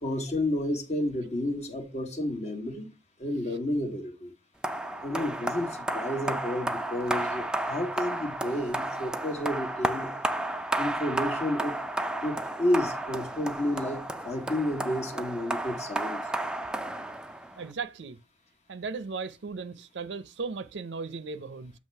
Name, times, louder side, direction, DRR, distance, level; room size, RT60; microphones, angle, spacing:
voice 1, 0.0-2.9 3.2-4.3 5.0-10.2 10.8-11.8 12.2-16.2, left 1 dB, 40° left, 1.3 m, -31 dB
sound 1, 4.6-17.7, right 1 dB, 5° right, 0.3 m, -32 dB
voice 2, 17.6-18.2 18.7-21.7, right 4 dB, 70° right, 0.5 m, -36 dB
7.5 x 3.0 x 4.5 m
head